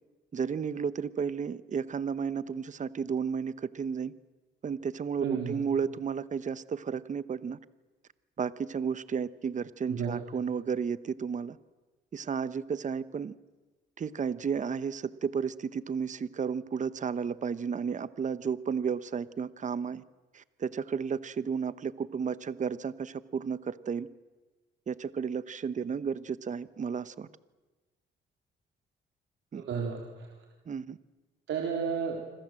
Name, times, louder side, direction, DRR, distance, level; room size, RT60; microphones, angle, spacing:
voice 1, 0.3-4.1 4.6-7.6 8.4-11.6 12.1-13.3 14.0-20.0 20.3-24.1 24.9-27.3 29.5-29.6 30.7-31.0, right 6 dB, 40° right, 15 dB, 1.0 m, -33 dB
voice 2, 5.2-5.6 9.9-10.2 29.5-30.4 31.5-32.2, right 6 dB, 75° right, 1 dB, 3.9 m, -33 dB
26.5 x 25.5 x 7.7 m, 1.3 s
cardioid pair, 90°, 20 cm